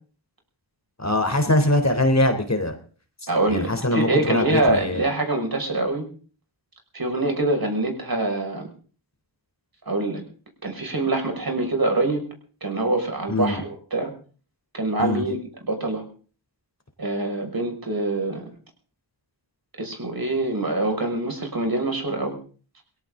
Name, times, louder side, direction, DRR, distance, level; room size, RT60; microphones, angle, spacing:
voice 1, 1.0-2.7 3.5-5.0 13.3-13.6 15.0-15.2, left 1 dB, 35° left, 7 dB, 3.7 m, -22 dB
voice 2, 3.3-6.1 6.9-8.7 9.9-10.2 10.6-12.2 12.6-14.1 14.7-15.4 15.6-16.0 17.0-18.5 19.8-22.4, right 2 dB, 50° right, 3 dB, 6.2 m, -25 dB
19.5 x 17.0 x 3.9 m, 0.41 s
cardioid pair, 45°, 47 cm